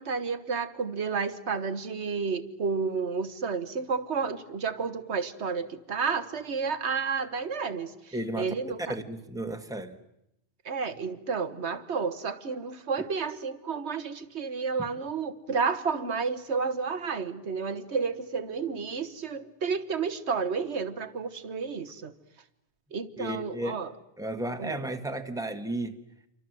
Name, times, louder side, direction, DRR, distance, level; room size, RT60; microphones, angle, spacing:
voice 1, 0.0-9.0 10.7-22.1 22.9-23.9 24.6-24.8, right 5 dB, 80° right, 12 dB, 1.6 m, -31 dB
voice 2, 8.1-8.5 8.9-10.0 23.2-23.8 24.2-26.0, right 1 dB, 5° right, 7 dB, 1.4 m, -33 dB
28.5 x 24.0 x 7.8 m, 0.82 s
omnidirectional pair, 1.1 m